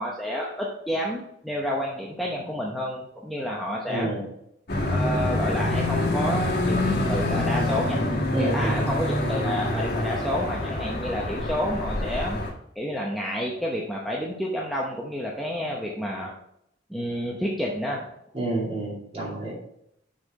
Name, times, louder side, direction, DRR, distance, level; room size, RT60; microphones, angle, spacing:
voice 1, 0.0-4.1 4.9-8.0 8.4-12.4 12.8-16.3 16.9-18.0, equal, ahead, -3 dB, 0.8 m, -30 dB
voice 2, 3.9-4.2 8.3-8.8 18.3-19.5, right 2 dB, 30° right, -4 dB, 2.5 m, -29 dB
sound 1, 4.7-12.5, left 1 dB, 55° left, 1.5 m, -26 dB
6.4 x 5.5 x 4.2 m, 0.76 s
head